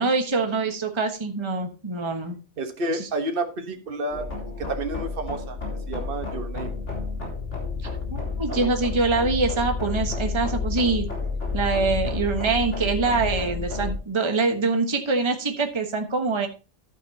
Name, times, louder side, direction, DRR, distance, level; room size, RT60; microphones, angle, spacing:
voice 1, 0.0-2.4 2.9-3.1 8.1-11.1 11.5-16.5, right 3 dB, 20° right, 5 dB, 1.3 m, -24 dB
voice 2, 2.6-4.3 4.7-5.6 5.9-6.7 8.5-8.7, right 2 dB, 45° right, 6 dB, 1.4 m, -30 dB
sound 1, 4.1-14.0, left 4 dB, 60° left, 4.0 m, -30 dB
11.5 x 9.0 x 2.9 m, 0.31 s
omnidirectional pair, 1.4 m